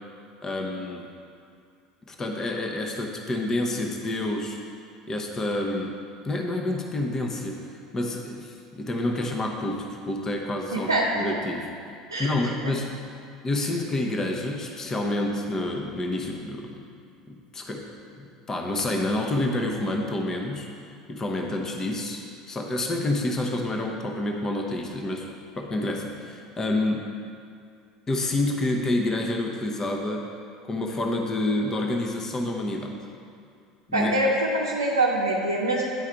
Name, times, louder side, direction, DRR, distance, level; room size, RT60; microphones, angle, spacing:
voice 1, 0.4-1.0 2.1-4.6 5.1-5.9 6.2-11.7 12.2-13.0 13.4-16.8 17.3-17.9 18.2-20.7 21.1-22.2 22.5-25.3 25.6-27.1 28.1-30.3 30.7-32.9 33.9-34.1, left 1 dB, 25° left, 2 dB, 0.9 m, -28 dB
voice 2, 10.7-11.4 12.1-12.3 12.6-12.7 33.9-35.8, right 1 dB, 85° right, -4 dB, 0.6 m, -24 dB
9.6 x 4.8 x 4.5 m, 2.3 s
figure-of-eight pair, 70°, 2 cm